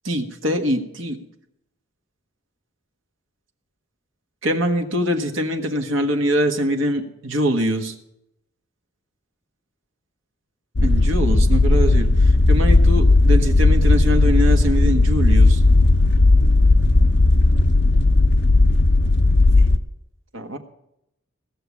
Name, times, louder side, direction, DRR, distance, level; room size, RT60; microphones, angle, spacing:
voice 1, 0.0-1.2 4.4-7.9 10.8-15.6 20.3-20.6, equal, 75° right, 5 dB, 1.5 m, -23 dB
sound 1, 10.8-19.8, left 2 dB, 55° left, 0.7 m, -15 dB
17.0 x 6.8 x 8.4 m, 0.80 s
head